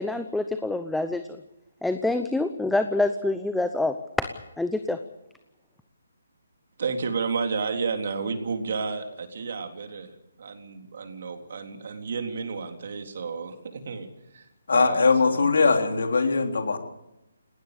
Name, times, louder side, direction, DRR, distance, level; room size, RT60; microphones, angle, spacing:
voice 1, 0.0-1.4 1.8-4.3 4.6-5.0, left 2 dB, 5° left, 8 dB, 0.8 m, -26 dB
voice 2, 6.8-10.1 10.4-15.8, right 5 dB, 55° right, 5 dB, 3.7 m, -32 dB
voice 3, 14.7-16.8, left 4 dB, 70° left, 4 dB, 3.7 m, -21 dB
19.5 x 19.0 x 8.2 m, 0.90 s
hypercardioid pair, 155°, 0 cm